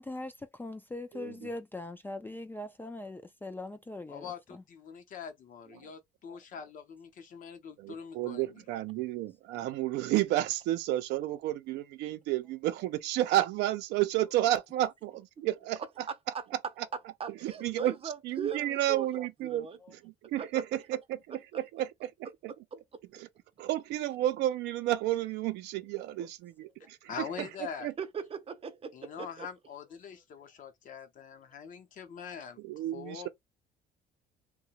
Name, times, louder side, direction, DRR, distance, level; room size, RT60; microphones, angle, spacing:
voice 1, 0.0-4.6 6.3-6.4 19.8-19.9, left 2 dB, 10° left, 0.3 m, -41 dB
voice 2, 1.1-1.5 7.8-15.8 17.4-17.9 18.2-19.7 20.0-21.0 21.5-21.9 22.4-22.5 23.6-27.1 27.8-27.9 32.6-33.3, right 14 dB, 85° right, 0.5 m, -31 dB
voice 3, 4.1-8.6 27.1-27.9 28.9-33.3, left 7 dB, 50° left, 0.7 m, -44 dB
voice 4, 16.1-16.4 17.2-19.8 20.4-20.6 21.3-21.6 22.5-23.0 26.2-26.3 27.4-27.5 28.0-29.5, right 6 dB, 35° right, 0.6 m, -40 dB
2.8 x 2.2 x 2.8 m
cardioid pair, 110°, 17 cm